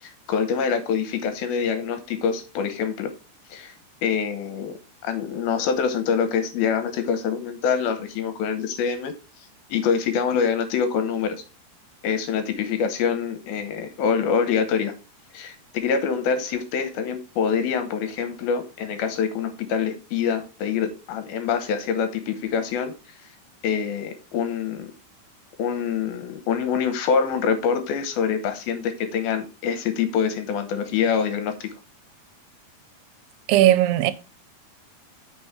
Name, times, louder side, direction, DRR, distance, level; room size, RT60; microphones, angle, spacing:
voice 1, 0.0-3.1 3.5-3.7 4.0-4.8 5.0-9.1 9.7-11.4 12.0-14.9 15.3-22.9 23.6-24.9 25.6-31.7, left 6 dB, 75° left, 2.7 m, -25 dB
voice 2, 33.5-34.1, right 13 dB, 85° right, 2.7 m, -17 dB
9.4 x 5.9 x 3.1 m
omnidirectional pair, 4.5 m